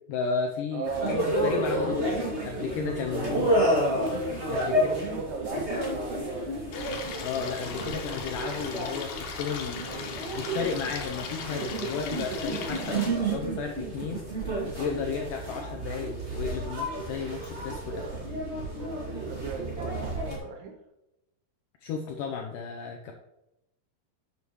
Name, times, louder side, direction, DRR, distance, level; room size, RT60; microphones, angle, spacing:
voice 1, 0.1-3.4 4.5-4.8 7.2-9.9 10.4-14.3 14.8-18.2 21.8-23.1, left 6 dB, 85° left, 2 dB, 1.8 m, -34 dB
voice 2, 0.7-1.3 3.2-3.6 4.5-6.6 17.9-18.2 19.3-20.8, right 5 dB, 80° right, 2 dB, 2.8 m, -37 dB
sound 1, 0.8-20.4, right 1 dB, 25° right, 1.7 m, -30 dB
Stream, 6.7-13.1, left 5 dB, 70° left, 2.8 m, -38 dB
9.3 x 6.9 x 3.1 m, 0.90 s
omnidirectional pair, 4.7 m